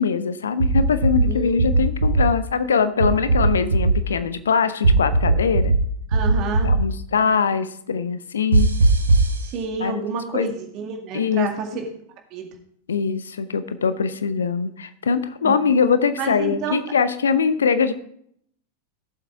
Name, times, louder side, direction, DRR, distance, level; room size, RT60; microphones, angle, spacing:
voice 1, 0.0-5.7 6.6-8.7 9.8-10.0 10.3-10.5 11.1-11.5 12.9-17.9, left 6 dB, 70° left, 13 dB, 0.7 m, -22 dB
sound 1, 0.6-1.3 1.6-2.2 3.0-3.9 4.8-5.8 6.1-6.8 8.5-9.3, right 3 dB, 75° right, 1.0 m, -17 dB
voice 2, 1.3-1.7 6.1-6.7 9.4-11.8 12.3-12.5 15.4-15.5 16.2-16.8, right 5 dB, 40° right, 3 dB, 2.1 m, -29 dB
17.0 x 7.5 x 3.5 m, 0.68 s
figure-of-eight pair, 90°, 0 cm